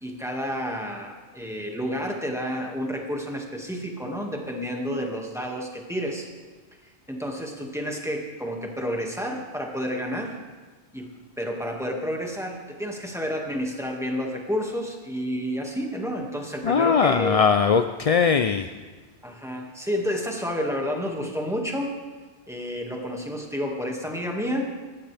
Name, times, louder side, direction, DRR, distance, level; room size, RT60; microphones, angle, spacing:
voice 1, 0.0-6.3 7.1-10.4 10.9-11.1 11.4-17.4 19.2-21.9 22.5-24.7, equal, ahead, 0 dB, 1.9 m, -30 dB
voice 2, 16.6-18.7, left 6 dB, 60° left, 8 dB, 0.4 m, -20 dB
20.0 x 14.5 x 3.4 m, 1.3 s
omnidirectional pair, 1.2 m